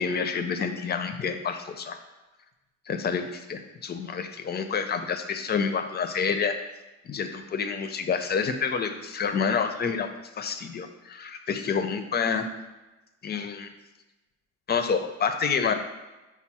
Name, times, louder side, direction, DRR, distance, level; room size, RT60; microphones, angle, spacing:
voice 1, 0.0-2.0 2.9-6.6 7.1-10.1 10.4-12.5 13.2-13.7 14.7-15.7, left 6 dB, 35° left, 7 dB, 0.5 m, -28 dB
6.0 x 2.0 x 4.1 m, 1.1 s
cardioid pair, 90°, 30 cm